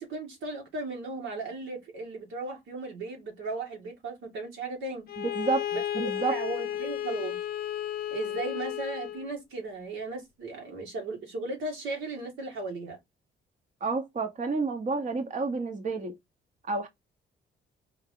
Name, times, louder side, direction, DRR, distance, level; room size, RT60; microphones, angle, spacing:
voice 1, 0.0-5.1 5.7-7.4 8.1-13.0, right 3 dB, 80° right, 2.0 m, -36 dB
Bowed string instrument, 5.1-9.3, left 11 dB, 50° left, 0.6 m, -33 dB
voice 2, 5.2-5.6 5.9-6.4 13.8-16.1 16.7-16.9, right 3 dB, 40° right, 1.0 m, -29 dB
4.6 x 2.8 x 3.7 m
cardioid pair, 90°, 20 cm